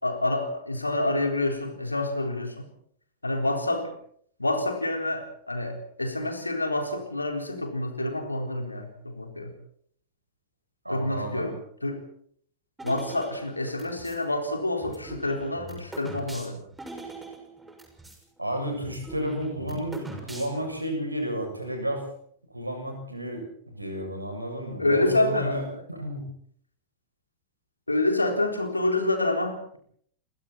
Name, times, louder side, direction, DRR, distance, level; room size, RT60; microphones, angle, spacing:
voice 1, 0.0-2.7 3.2-3.9 4.4-9.6 10.9-12.0 12.8-16.6 24.8-25.6 27.9-29.8, left 2 dB, 85° left, 5 dB, 4.1 m, -27 dB
voice 2, 10.8-11.5 18.4-22.0 22.5-25.6 25.9-26.3, equal, 85° right, 4 dB, 7.5 m, -32 dB
sound 1, 12.8-14.2 14.8-18.2 18.5-18.6 18.8-20.8, right 2 dB, 10° right, 6.4 m, -42 dB
28.5 x 22.5 x 4.4 m, 0.62 s
figure-of-eight pair, 90°, 0 cm